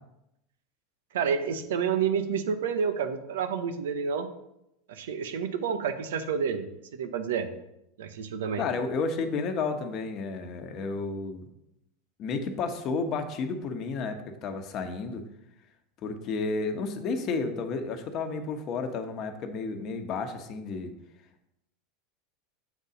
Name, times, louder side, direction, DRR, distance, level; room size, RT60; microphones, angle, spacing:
voice 1, 1.1-4.3 4.9-6.7 6.9-7.5 8.0-8.6, right 7 dB, 80° right, 9 dB, 0.7 m, -29 dB
voice 2, 8.6-11.5 12.2-15.2 16.0-20.9, left 4 dB, 45° left, 6 dB, 1.0 m, -32 dB
7.2 x 4.1 x 5.0 m, 0.83 s
hypercardioid pair, 95°, 0 cm